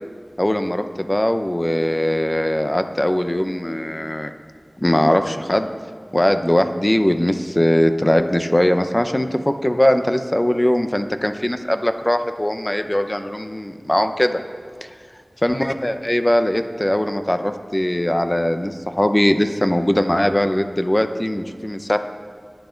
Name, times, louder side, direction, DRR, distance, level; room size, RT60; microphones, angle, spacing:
voice 1, 0.4-4.3 4.8-5.7 6.1-14.4 15.4-22.0, left 1 dB, 25° left, 8 dB, 0.8 m, -20 dB
21.0 x 7.2 x 4.0 m, 2.1 s
wide cardioid pair, 50°, 0 cm